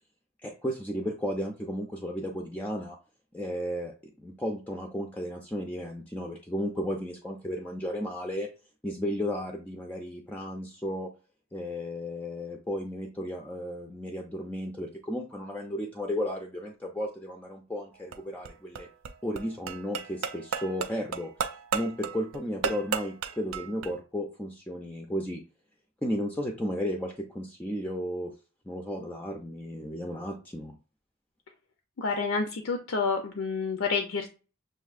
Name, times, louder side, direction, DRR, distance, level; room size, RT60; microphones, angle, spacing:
voice 1, 0.4-3.0 3.3-8.5 8.8-11.1 11.5-18.9 19.2-21.3 21.7-25.4 26.0-28.3 28.7-30.7, equal, 10° left, 1 dB, 0.4 m, -34 dB
sound 1, 17.9-23.9, right 5 dB, 85° right, 0.4 m, -34 dB
voice 2, 32.0-34.3, left 4 dB, 80° left, 4 dB, 0.5 m, -29 dB
6.3 x 2.6 x 2.4 m, 0.34 s
head